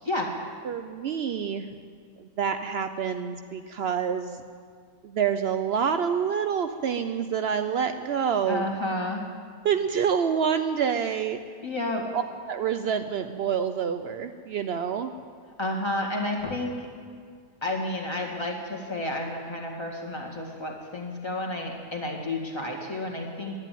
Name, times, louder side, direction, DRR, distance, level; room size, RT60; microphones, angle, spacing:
voice 1, 0.0-0.3 8.5-9.3 11.6-12.1 15.6-16.9 17.6-23.6, left 1 dB, 15° left, -1 dB, 1.9 m, -31 dB
voice 2, 0.6-1.7 2.2-4.4 5.0-8.7 9.6-11.4 12.1-15.1, right 7 dB, 90° right, 8 dB, 0.5 m, -27 dB
11.5 x 10.5 x 9.2 m, 2.1 s
omnidirectional pair, 1.7 m